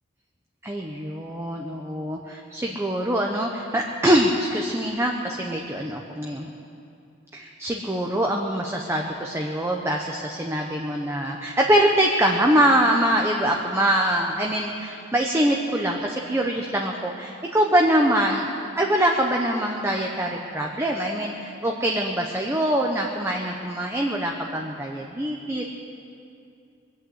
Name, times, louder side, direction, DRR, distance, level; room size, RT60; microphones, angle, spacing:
voice 1, 0.6-6.5 7.3-18.5 18.7-25.6, right 1 dB, 15° right, 0 dB, 0.9 m, -24 dB
21.5 x 8.2 x 8.1 m, 2.5 s
head